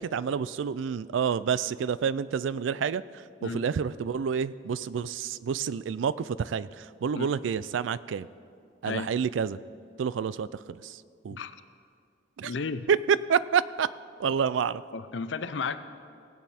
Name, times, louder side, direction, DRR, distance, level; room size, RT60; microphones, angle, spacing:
voice 1, 0.0-3.0 3.4-8.3 8.8-9.6 10.0-11.0 11.2-11.4 12.4-12.5 12.9-13.9 14.2-14.8, right 7 dB, 90° right, 17 dB, 0.4 m, -28 dB
voice 2, 12.4-12.9 14.9-15.8, left 5 dB, 75° left, 12 dB, 0.6 m, -33 dB
19.0 x 8.3 x 4.3 m, 2.3 s
head